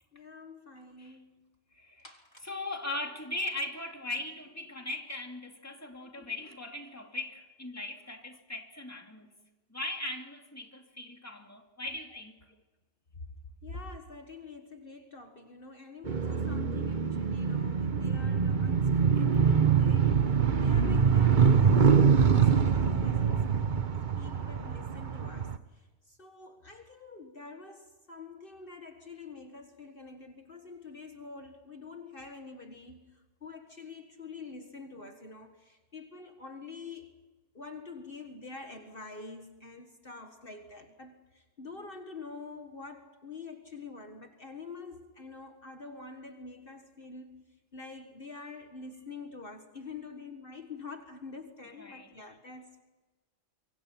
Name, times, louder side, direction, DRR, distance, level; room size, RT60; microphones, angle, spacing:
voice 1, 0.1-1.5 2.0-2.5 6.2-6.3 13.6-20.2 20.6-23.4 24.2-37.1 37.5-52.8, left 4 dB, 50° left, 1.9 m, -46 dB
voice 2, 1.7-2.1 2.4-9.3 9.7-12.4 51.7-52.3, left 2 dB, 15° left, 2.6 m, -39 dB
sound 1, 16.1-25.6, right 6 dB, 45° right, 1.1 m, -24 dB
26.0 x 24.5 x 5.9 m
omnidirectional pair, 1.2 m